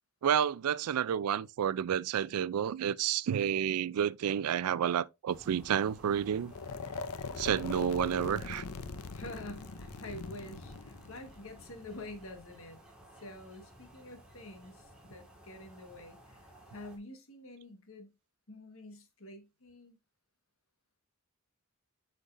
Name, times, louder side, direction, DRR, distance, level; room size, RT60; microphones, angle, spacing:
voice 1, 0.2-6.5 7.4-8.6, right 9 dB, 85° right, 0.3 m, -30 dB
sound 1, 5.3-17.0, equal, 5° right, 1.7 m, -53 dB
sound 2, 6.5-12.5, left 5 dB, 90° left, 0.6 m, -42 dB
voice 2, 9.1-12.8 13.2-18.1 18.5-20.0, left 1 dB, 65° left, 1.4 m, -48 dB
7.9 x 5.2 x 2.5 m
head